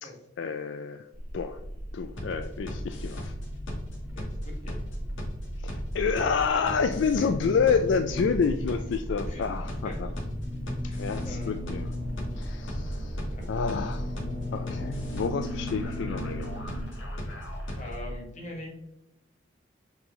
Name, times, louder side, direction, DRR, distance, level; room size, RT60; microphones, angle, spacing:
voice 1, 0.4-1.1 1.3-1.6 1.9-3.3 5.6-10.1 11.0-11.9 12.4-14.1 14.5-16.5, left 5 dB, 70° left, 9 dB, 0.3 m, -29 dB
sound 1, 1.1-16.8, left 1 dB, 25° right, 1.6 m, -37 dB
sound 2, 2.2-18.1, equal, 85° left, 1.8 m, -37 dB
voice 2, 4.1-4.9 7.0-7.3 9.3-9.5 9.8-10.1 10.8-11.6 12.8-13.0 13.3-13.8 17.7-18.7, left 1 dB, 40° left, 0 dB, 1.5 m, -43 dB
5.6 x 4.9 x 3.7 m, 0.86 s
head